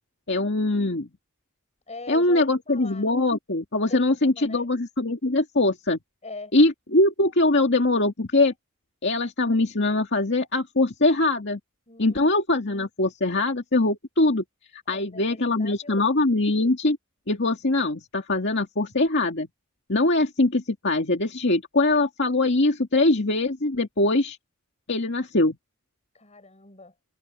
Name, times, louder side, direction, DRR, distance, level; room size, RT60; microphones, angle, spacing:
voice 1, 0.3-1.1 2.1-6.0 6.5-8.5 9.0-11.6 12.0-14.4 14.9-17.0 17.3-19.5 19.9-24.4 24.9-25.6, left 2 dB, 55° left, 2.1 m, -22 dB
voice 2, 1.9-3.1 3.9-4.7 6.2-6.6 11.9-12.3 14.9-16.1 26.1-26.9, left 3 dB, 30° left, 7.9 m, -42 dB
head